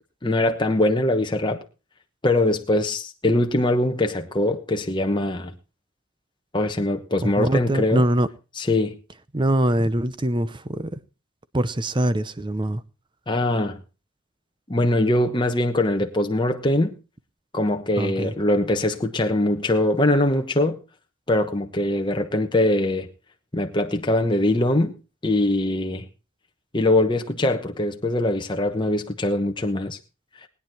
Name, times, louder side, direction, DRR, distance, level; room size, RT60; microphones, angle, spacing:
voice 1, 0.2-1.6 2.2-5.5 6.5-8.0 8.6-9.0 13.3-13.8 14.7-16.9 17.5-20.8 21.3-23.1 23.5-24.9 25.2-26.0 26.7-30.0, left 1 dB, 20° left, 1.1 m, -22 dB
voice 2, 7.2-8.3 9.3-11.0 11.5-12.8 18.0-18.3, right 1 dB, 20° right, 0.7 m, -23 dB
19.5 x 9.7 x 4.4 m
head